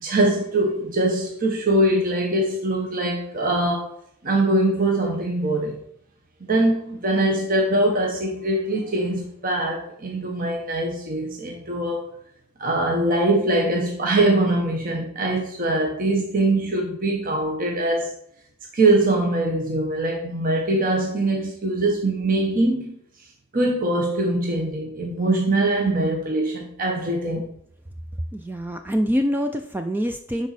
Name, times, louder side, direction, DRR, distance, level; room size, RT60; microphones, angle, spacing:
voice 1, 0.0-3.9 4.2-5.8 6.5-12.1 12.6-18.2 18.7-23.0 23.5-27.4, right 2 dB, 40° right, 1.0 m, -22 dB
voice 2, 28.3-30.5, equal, 10° right, 0.3 m, -25 dB
11.0 x 4.1 x 4.1 m
head